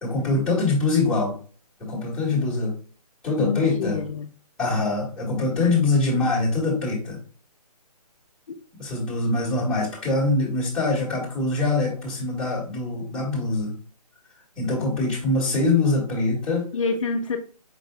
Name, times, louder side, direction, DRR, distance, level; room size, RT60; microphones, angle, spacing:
voice 1, 0.0-1.4 1.8-2.7 3.2-4.0 4.6-7.2 8.8-13.7 14.6-16.7, left 3 dB, 5° left, 1.4 m, -23 dB
voice 2, 3.4-4.3 5.6-5.7 8.5-8.6 16.7-17.4, left 4 dB, 55° left, 0.5 m, -27 dB
4.8 x 3.8 x 2.3 m
hypercardioid pair, 155°, 21 cm